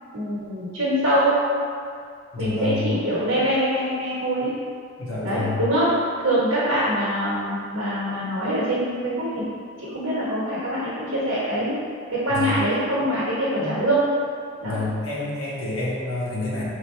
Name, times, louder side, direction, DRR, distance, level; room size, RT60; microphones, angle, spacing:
voice 1, 0.1-1.4 2.4-4.5 5.2-9.4 9.8-11.8 12.1-14.0 14.6-14.8, right 1 dB, 75° right, -9 dB, 1.2 m, -24 dB
voice 2, 2.3-2.9 5.0-5.6 12.3-12.6 13.6-13.7 14.6-16.6, left 2 dB, 85° left, -7 dB, 1.2 m, -28 dB
3.7 x 2.8 x 4.3 m, 2.3 s
head